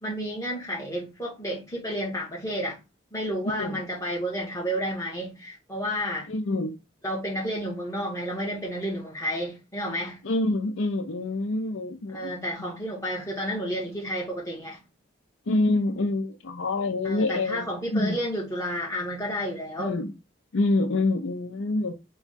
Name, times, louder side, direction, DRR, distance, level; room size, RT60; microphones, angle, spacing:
voice 1, 0.0-2.8 3.1-6.3 7.0-10.2 12.1-14.8 17.0-20.0, equal, 15° left, 1.3 m, -31 dB
voice 2, 6.3-6.8 10.2-12.5 15.5-18.2 19.8-20.1 20.5-21.9, left 2 dB, 85° left, 0.5 m, -26 dB
3.5 x 2.3 x 3.9 m
head